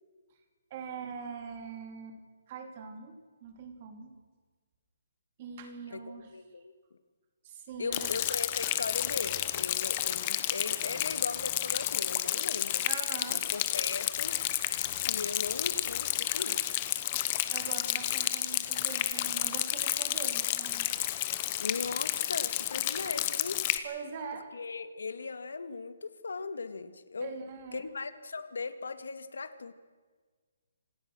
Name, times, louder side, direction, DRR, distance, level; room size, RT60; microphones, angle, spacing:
voice 1, 0.7-2.2 2.5-4.2 5.4-6.3 7.4-8.2 12.8-13.5 17.1-17.2 17.5-20.9 23.8-24.5 27.2-27.9, right 6 dB, 25° right, 6 dB, 2.9 m, -43 dB
voice 2, 5.9-6.7 7.8-12.8 13.3-14.4 15.0-16.6 21.6-23.6 24.5-27.3 27.7-29.7, left 4 dB, 85° left, 11 dB, 2.2 m, -38 dB
Rain, 7.9-23.8, left 14 dB, 20° left, 1.0 m, -31 dB
27.0 x 19.0 x 6.3 m, 1.5 s
hypercardioid pair, 180°, 0 cm